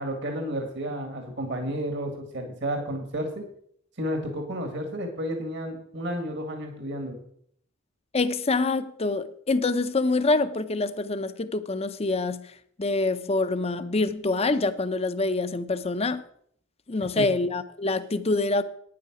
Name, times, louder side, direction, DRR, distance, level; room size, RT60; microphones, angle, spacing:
voice 1, 0.0-3.4 4.0-7.2 17.2-17.3, equal, 60° right, 1.8 m, -31 dB
voice 2, 8.1-16.2 16.9-18.6, left 3 dB, 30° left, 0.6 m, -26 dB
9.5 x 8.5 x 6.1 m
head